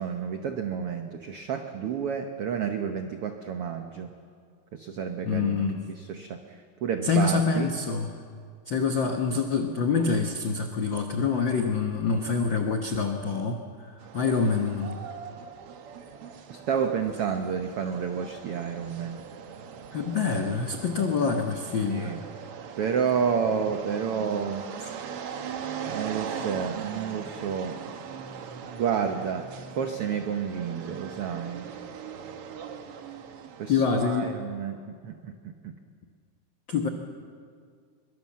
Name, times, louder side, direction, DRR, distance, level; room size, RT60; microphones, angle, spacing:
voice 1, 0.0-4.1 4.7-6.4 6.8-7.7 16.5-19.2 21.9-22.2 22.8-24.6 25.9-27.8 28.7-29.5 29.8-31.7 33.6-35.7, right 7 dB, 85° right, 6 dB, 1.2 m, -30 dB
voice 2, 5.2-5.8 7.0-8.1 8.7-15.0 19.9-22.1 33.7-34.3 36.7-36.9, left 5 dB, 80° left, 4 dB, 1.0 m, -26 dB
sound 1, 14.0-33.7, right 7 dB, 65° right, 1.5 m, -40 dB
23.5 x 22.5 x 7.4 m, 2.1 s
omnidirectional pair, 4.1 m